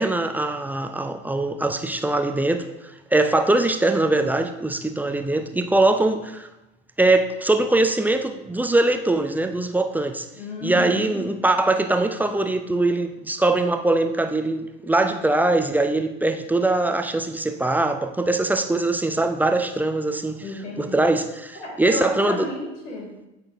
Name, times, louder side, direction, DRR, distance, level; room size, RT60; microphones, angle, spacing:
voice 1, 0.0-6.5 7.0-10.3 10.6-20.4 20.8-22.5, right 2 dB, 5° right, 7 dB, 0.4 m, -22 dB
voice 2, 10.3-11.2 20.4-21.1 21.5-23.3, left 2 dB, 70° left, 0 dB, 2.4 m, -33 dB
16.0 x 6.1 x 2.5 m, 0.97 s
figure-of-eight pair, 75°, 37 cm